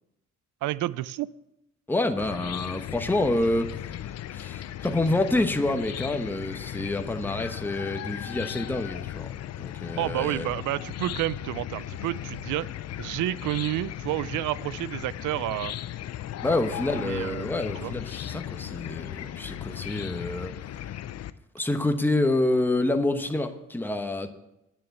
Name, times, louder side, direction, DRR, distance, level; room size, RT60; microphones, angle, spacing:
voice 1, 0.6-1.3 10.0-12.7 13.0-15.7 17.0-17.9, right 15 dB, 85° right, 20 dB, 0.5 m, -30 dB
voice 2, 1.9-10.5 16.4-20.8 21.5-24.3, left 2 dB, 5° left, 6 dB, 1.0 m, -28 dB
Chicken rooster / Cricket, 2.2-21.3, left 12 dB, 55° left, 0.6 m, -37 dB
9.4 x 6.7 x 8.0 m, 0.89 s
cardioid pair, 90°, 30 cm